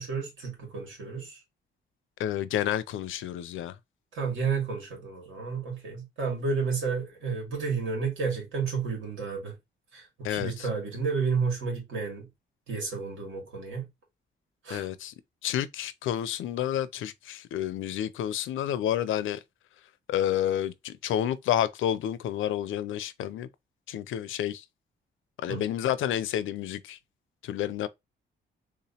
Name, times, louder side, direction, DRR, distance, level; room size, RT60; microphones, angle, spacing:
voice 1, 0.0-1.4 4.1-9.6 9.9-12.3 12.7-13.9 14.6-14.9 25.5-25.6, right 5 dB, 90° right, 2.1 m, -31 dB
voice 2, 2.2-3.8 10.2-10.7 14.7-15.1 15.4-19.4 20.1-23.5 23.9-24.6 25.4-27.0 27.4-27.9, left 11 dB, 85° left, 0.4 m, -30 dB
3.6 x 2.9 x 2.8 m
wide cardioid pair, 165°, 20 cm